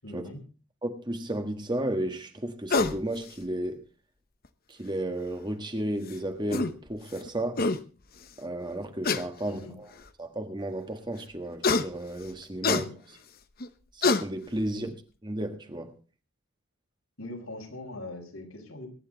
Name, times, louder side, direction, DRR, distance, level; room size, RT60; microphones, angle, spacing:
voice 1, 0.0-0.4 9.5-9.7 12.7-12.9 14.7-14.9 17.2-18.9, left 2 dB, 80° left, 5.3 m, -41 dB
voice 2, 0.8-3.8 4.7-7.6 8.4-9.9 10.2-12.8 13.9-14.9 15.2-15.9, right 1 dB, 20° right, 1.5 m, -33 dB
sound 1, 2.7-3.0 4.4-4.5 6.1-6.2 6.5-6.7 7.3-7.4 7.6-7.8 9.0-9.2 10.1-10.2 11.6-11.8 12.6-12.8 13.6-13.7 14.0-14.2, left 3 dB, 45° left, 0.9 m, -24 dB
23.5 x 10.0 x 3.9 m
head